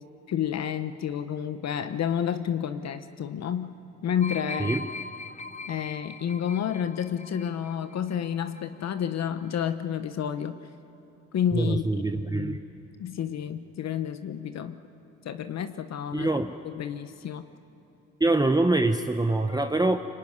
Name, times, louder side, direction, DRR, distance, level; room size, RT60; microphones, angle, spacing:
voice 1, 0.3-4.7 5.7-10.6 11.3-11.9 12.1-12.6 13.0-14.8 15.2-16.3 16.6-17.5, left 9 dB, 60° left, 10 dB, 1.1 m, -30 dB
sound 1, 4.2-8.8 9.1-9.3, left 4 dB, 25° left, 0.8 m, -40 dB
voice 2, 11.5-12.6 16.1-16.5 18.2-20.0, right 2 dB, 15° right, 6 dB, 0.9 m, -24 dB
25.0 x 23.0 x 9.6 m, 2.8 s
cardioid pair, 90°, 30 cm